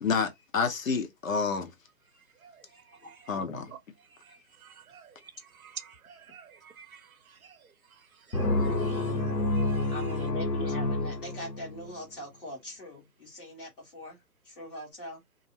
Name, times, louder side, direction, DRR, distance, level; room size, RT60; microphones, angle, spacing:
voice 1, 0.0-1.7 3.3-3.7, left 5 dB, 55° left, 0.8 m, -29 dB
voice 2, 2.4-3.2 3.7-3.8 4.2-7.7 8.2-9.9, right 7 dB, 60° right, 0.7 m, -50 dB
voice 3, 3.0-3.6 9.9-14.2 14.4-15.2, left 1 dB, 35° left, 1.4 m, -42 dB
sound 1, 8.3-11.9, left 2 dB, 80° left, 1.0 m, -29 dB
2.5 x 2.0 x 2.8 m
figure-of-eight pair, 150°, 49 cm